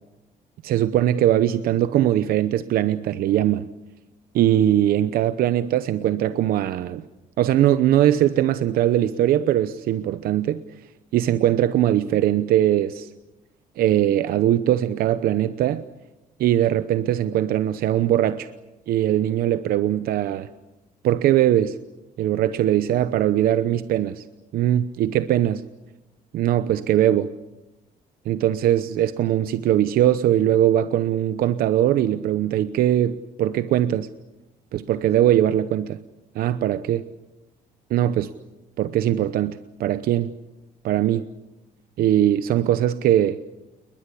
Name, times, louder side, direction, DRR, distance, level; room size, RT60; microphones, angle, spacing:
voice 1, 0.6-3.7 4.3-7.0 7.4-10.6 11.1-13.1 13.8-15.8 16.4-18.5 18.9-20.5 21.0-21.8 22.2-24.2 24.5-25.6 26.3-27.3 28.3-34.1 34.7-36.0 36.3-37.0 37.9-38.3 38.8-40.3 40.8-41.2 42.0-43.4, right 12 dB, 75° right, 12 dB, 0.9 m, -21 dB
29.5 x 21.5 x 8.5 m, 1.0 s
cardioid pair, 145°, 15 cm